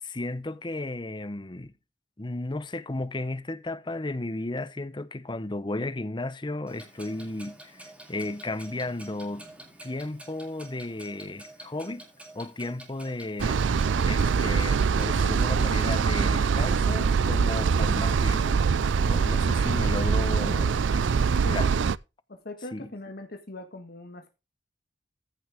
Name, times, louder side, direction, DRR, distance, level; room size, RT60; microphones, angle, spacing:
voice 1, 0.0-1.7 2.2-7.8 8.1-9.5 9.8-12.0 12.3-18.6 19.1-21.7 22.7-22.9, left 2 dB, 25° left, 0.8 m, -34 dB
Clock, 6.7-15.9, right 1 dB, 5° right, 3.0 m, -48 dB
sound 1, 13.4-22.0, right 5 dB, 85° right, 0.4 m, -23 dB
voice 2, 22.3-24.4, left 2 dB, 55° left, 1.6 m, -40 dB
14.5 x 6.5 x 3.5 m
head